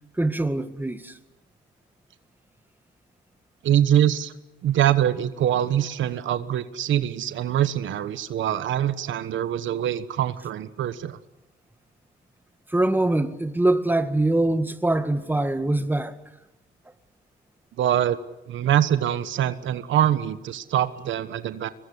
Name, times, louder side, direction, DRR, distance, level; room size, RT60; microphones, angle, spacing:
voice 1, 0.2-1.2 12.7-16.2, right 2 dB, 10° right, 1.9 m, -23 dB
voice 2, 3.6-4.3 4.6-11.2 17.8-18.2 18.5-21.7, right 11 dB, 75° right, 1.3 m, -24 dB
24.0 x 21.5 x 9.8 m
cardioid pair, 90°, 20 cm